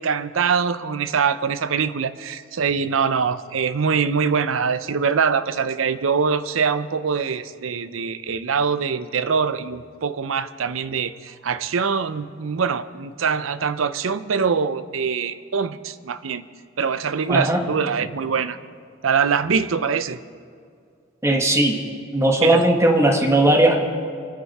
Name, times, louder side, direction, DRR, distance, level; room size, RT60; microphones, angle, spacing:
voice 1, 0.0-16.4 16.8-18.6 19.0-20.2 22.4-22.6, right 6 dB, 90° right, 13 dB, 0.6 m, -23 dB
voice 2, 17.3-17.6 21.2-21.8 22.1-23.8, right 1 dB, 15° right, 2 dB, 1.4 m, -17 dB
25.5 x 9.6 x 4.2 m, 2.2 s
head